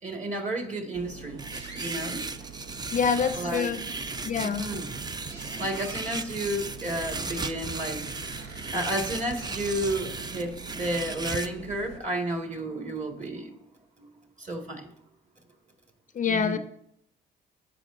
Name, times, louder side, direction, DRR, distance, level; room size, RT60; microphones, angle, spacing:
voice 1, 0.0-1.4 1.7-2.3 3.4-3.7 4.4-4.8 5.6-8.1 8.7-13.5 14.0-14.1 14.4-14.9 16.3-16.6, right 1 dB, 35° right, 2 dB, 2.0 m, -32 dB
sound 1, 0.9-12.0, right 6 dB, 80° right, 0.8 m, -45 dB
sound 2, 1.4-11.5, right 3 dB, 20° right, 0.5 m, -36 dB
sound 3, 1.5-2.0 3.1-3.8 5.3-6.3 7.0-10.5, right 2 dB, 55° right, 1.9 m, -48 dB
voice 2, 2.9-3.8 4.2-4.6 16.1-16.6, left 6 dB, 40° left, 11 dB, 0.4 m, -26 dB
14.5 x 5.0 x 2.6 m, 0.72 s
cardioid pair, 90°, 20 cm